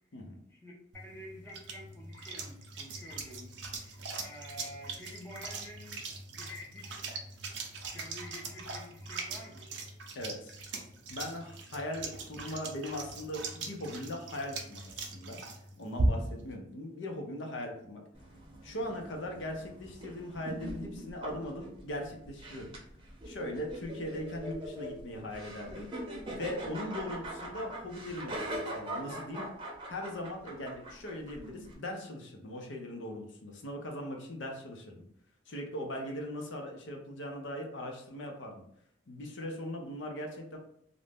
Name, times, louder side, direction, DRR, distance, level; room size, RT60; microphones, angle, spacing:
voice 1, 0.5-7.1 7.9-9.7 36.0-36.2, left 1 dB, 15° left, -1 dB, 0.5 m, -49 dB
sound 1, 0.9-16.5, right 2 dB, 70° right, 0.5 m, -39 dB
voice 2, 10.1-10.6 11.1-15.4 15.8-18.0 18.6-22.8 23.2-25.9 26.3-29.5 29.9-35.0 35.5-38.6 39.1-40.6, left 1 dB, 85° left, 2 dB, 0.6 m, -40 dB
sound 2, 18.1-31.7, right 1 dB, 25° right, 0.6 m, -42 dB
2.5 x 2.1 x 3.3 m, 0.68 s
head